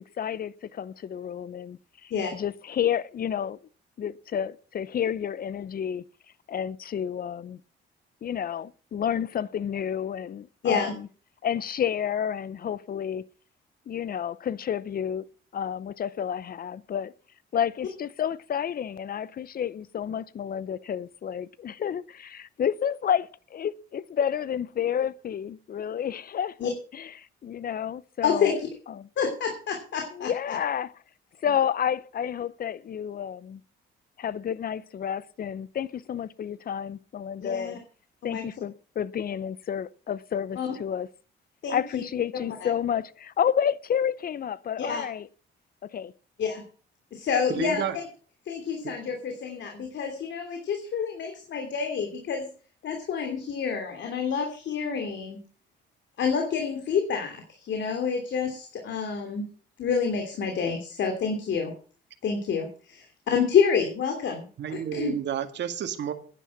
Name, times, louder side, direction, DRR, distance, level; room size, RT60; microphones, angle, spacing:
voice 1, 0.0-3.6 4.0-6.0 6.5-7.6 8.2-11.1 11.4-13.2 13.9-15.3 15.5-17.1 17.5-27.1 27.4-28.6 29.0-29.1 30.1-30.9 31.4-33.6 34.2-37.8 38.2-41.1 41.7-45.3 45.8-46.1, left 8 dB, 50° left, 0.7 m, -30 dB
voice 2, 10.6-11.0 26.6-26.7 28.2-28.7 29.2-30.3 37.4-37.8 38.2-38.4 40.6-40.7 41.6-42.0 42.6-42.7 44.8-45.0 46.4-46.6 47.1-47.8 48.5-52.5 52.8-55.4 56.2-59.4 59.8-61.7 62.2-65.2, left 6 dB, 65° left, 3.1 m, -28 dB
voice 3, 47.5-48.0 48.8-48.9 64.6-66.1, right 9 dB, 65° right, 2.0 m, -30 dB
11.0 x 10.0 x 7.2 m
cardioid pair, 90°, 20 cm